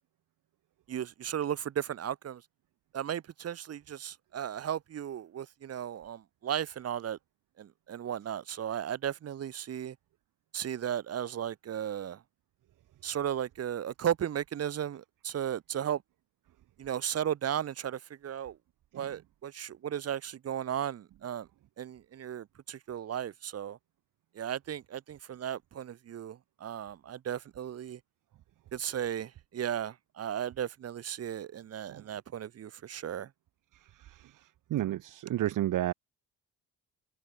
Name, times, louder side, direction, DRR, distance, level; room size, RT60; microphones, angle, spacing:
voice 1, 0.9-2.4 2.9-7.2 7.6-10.0 10.5-12.2 13.0-16.0 16.8-18.6 18.9-21.5 21.8-23.8 24.4-28.0 28.7-33.3, right 9 dB, 45° right, 2.3 m, -35 dB
voice 2, 34.0-34.3 34.7-35.9, right 13 dB, 65° right, 2.0 m, -31 dB
open air
cardioid pair, 160°, 34 cm